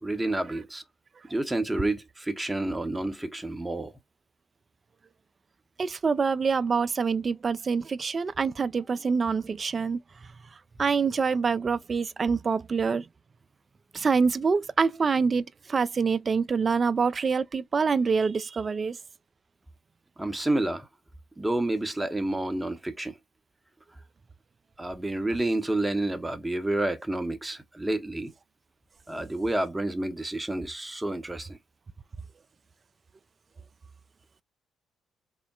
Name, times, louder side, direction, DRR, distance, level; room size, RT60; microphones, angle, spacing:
voice 1, 0.0-0.8 1.3-3.9 20.2-20.9 21.4-23.2 24.8-28.3 29.1-31.6, right 1 dB, 15° right, 0.7 m, -29 dB
voice 2, 5.8-10.0 10.8-13.1 13.9-15.4 15.7-19.0, right 5 dB, 40° right, 0.3 m, -25 dB
3.7 x 2.1 x 2.2 m
hypercardioid pair, 45°, 0 cm